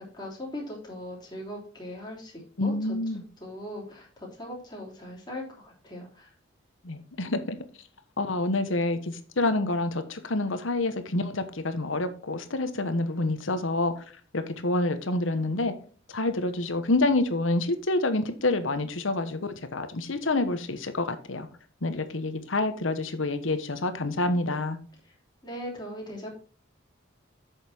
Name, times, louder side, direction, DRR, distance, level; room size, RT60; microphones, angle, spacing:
voice 1, 0.1-2.7 3.4-6.3 25.4-26.3, left 1 dB, 20° left, 3.2 m, -39 dB
voice 2, 2.6-3.2 6.8-7.6 8.2-13.9 14.3-15.7 16.1-21.5 21.8-24.8, left 2 dB, 80° left, 1.1 m, -27 dB
8.2 x 6.5 x 4.4 m
head